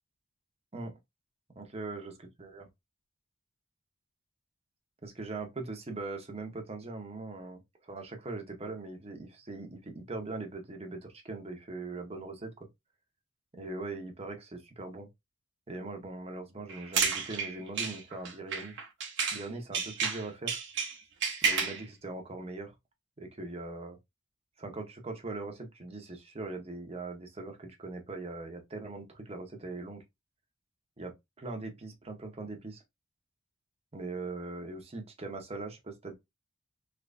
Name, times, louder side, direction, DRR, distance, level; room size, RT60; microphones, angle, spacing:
voice 1, 1.6-2.1 2.4-2.7 5.0-7.6 7.9-12.5 13.5-15.1 15.7-18.7 19.3-20.6 21.4-22.7 23.2-24.0 24.6-30.0 31.0-32.8 33.9-36.1, right 3 dB, 30° right, 0.8 m, -41 dB
sound 1, 16.7-19.5 19.7-21.8, right 6 dB, 60° right, 0.9 m, -31 dB
3.4 x 2.9 x 2.5 m
head